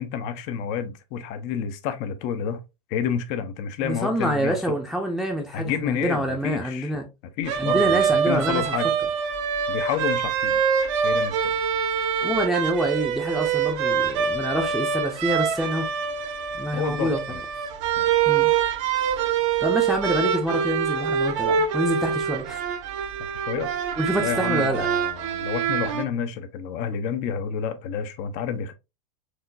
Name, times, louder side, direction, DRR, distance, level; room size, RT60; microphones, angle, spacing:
voice 1, 0.0-2.6 2.9-4.6 5.5-6.9 7.4-8.9 9.7-10.6 11.0-11.5 16.7-17.4 18.0-18.3 23.3-23.7 24.2-28.7, left 8 dB, 40° left, 0.6 m, -29 dB
voice 2, 3.8-7.0 7.6-8.6 12.2-16.0 16.5-17.2 18.3-18.5 19.6-22.6 24.0-24.9, equal, ahead, 0.6 m, -26 dB
sound 1, 7.5-26.0, right 7 dB, 50° right, 0.7 m, -25 dB
4.7 x 2.9 x 2.5 m
figure-of-eight pair, 95°, 20 cm